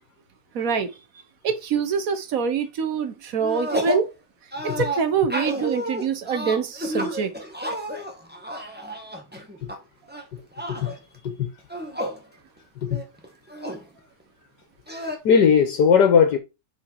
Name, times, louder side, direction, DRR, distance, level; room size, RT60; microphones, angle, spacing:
voice 1, 0.5-0.9 1.4-4.1 4.6-7.3, right 6 dB, 55° right, 1.3 m, -25 dB
sound 1, 3.4-4.1 4.5-9.8 10.1-11.0 11.6-12.2 12.6-12.7 12.9-13.8 14.9-15.2, equal, 5° right, 1.5 m, -30 dB
voice 2, 15.2-16.4, left 6 dB, 70° left, 1.7 m, -19 dB
6.3 x 5.2 x 4.6 m
omnidirectional pair, 1.9 m